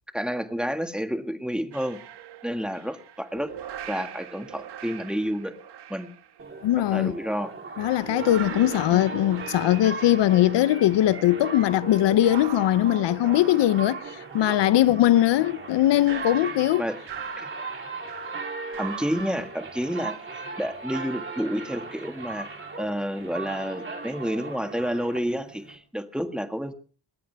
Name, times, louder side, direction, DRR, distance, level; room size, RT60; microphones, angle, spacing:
voice 1, 0.1-2.0 2.4-3.5 3.9-5.5 5.9-6.1 6.9-7.5 8.9-9.0 16.8-17.0 17.4-17.5 18.8-20.2 20.6-22.5 22.8-26.7, equal, ahead, 1.8 m, -30 dB
sound 1, 1.7-7.1 7.8-19.5, right 10 dB, 70° right, 1.5 m, -41 dB
sound 2, 6.4-25.8, right 3 dB, 30° right, 3.6 m, -38 dB
voice 2, 6.6-7.2 7.8-16.8, left 13 dB, 80° left, 0.7 m, -21 dB
19.5 x 18.5 x 3.4 m
cardioid pair, 135°, 42 cm